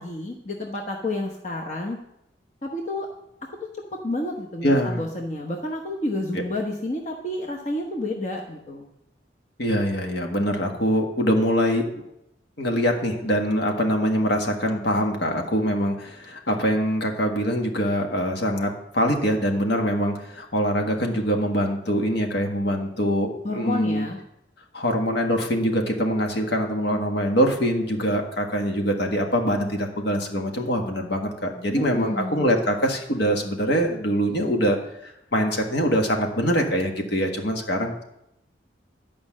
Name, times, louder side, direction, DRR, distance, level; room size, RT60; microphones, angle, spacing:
voice 1, 0.0-2.0 2.6-3.1 4.0-8.9 23.4-24.2 31.8-32.5, left 2 dB, 40° left, 0 dB, 1.0 m, -30 dB
voice 2, 4.6-5.1 6.3-6.4 9.6-11.8 12.6-24.1 24.7-34.8 35.0-38.0, equal, 65° left, 3 dB, 1.6 m, -24 dB
11.5 x 5.4 x 7.4 m, 0.82 s
head